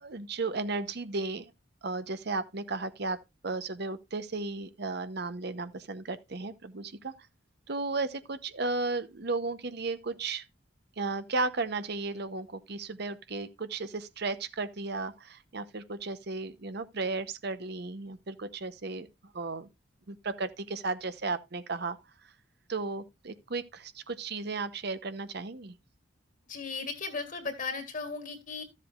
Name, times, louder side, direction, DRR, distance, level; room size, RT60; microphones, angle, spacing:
voice 1, 0.0-1.5 1.8-3.2 3.4-7.1 7.7-10.4 11.0-19.1 19.3-19.7 20.1-22.0 22.7-25.7, right 3 dB, 55° right, 0.9 m, -34 dB
voice 2, 26.5-28.6, left 4 dB, 45° left, 2.1 m, -36 dB
14.0 x 7.5 x 2.4 m
head